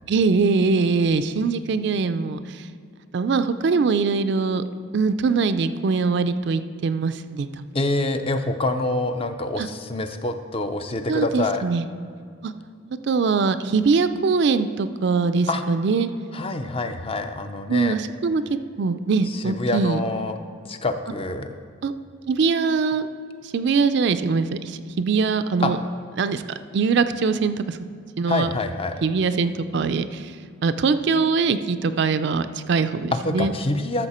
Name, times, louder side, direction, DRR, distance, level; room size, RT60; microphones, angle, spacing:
voice 1, 0.1-2.7 3.1-4.6 4.9-7.7 9.6-9.7 11.1-11.9 12.4-12.5 13.0-16.1 17.7-18.4 18.8-20.0 21.8-21.9 22.3-23.1 23.5-25.8 26.2-26.4 26.7-27.8 28.2-28.5 29.0-30.3 30.6-33.5, right 4 dB, 55° right, 11 dB, 0.4 m, -22 dB
voice 2, 7.7-11.6 15.5-15.6 16.3-18.0 19.3-20.4 20.7-21.6 25.6-25.7 28.3-28.9 33.1-34.1, left 2 dB, 25° left, 8 dB, 0.4 m, -26 dB
13.0 x 6.6 x 4.3 m, 2.3 s
head